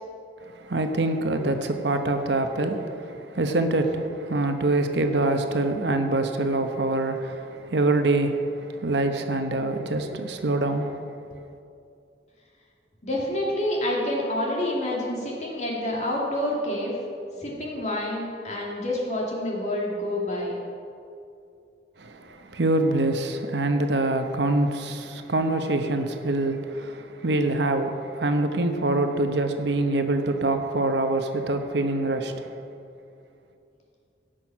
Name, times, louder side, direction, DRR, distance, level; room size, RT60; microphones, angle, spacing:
voice 1, 0.4-11.0 22.0-32.5, right 2 dB, 70° right, 6 dB, 0.9 m, -25 dB
voice 2, 13.0-17.0 17.3-20.6, left 1 dB, 40° left, -3 dB, 2.5 m, -28 dB
16.5 x 6.2 x 5.9 m, 2.6 s
head